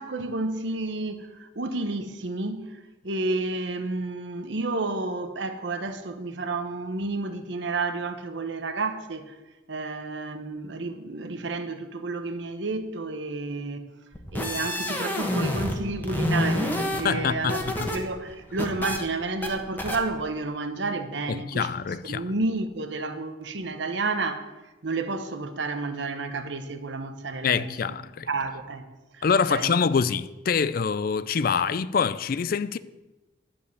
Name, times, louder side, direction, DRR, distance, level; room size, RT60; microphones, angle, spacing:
voice 1, 0.0-2.8 3.0-9.4 9.7-13.9 14.3-21.7 22.0-24.5 24.8-27.7 28.3-28.8 29.2-29.7, right 3 dB, 75° right, 1.0 m, -31 dB
sound 1, 14.1-15.8 16.0-18.0 18.3-19.0 19.4-19.5 19.8-20.0, left 1 dB, 10° left, 1.3 m, -28 dB
voice 2, 17.0-17.9 21.3-22.3 27.4-28.3 29.2-32.8, left 6 dB, 50° left, 0.4 m, -25 dB
11.5 x 5.2 x 8.2 m
head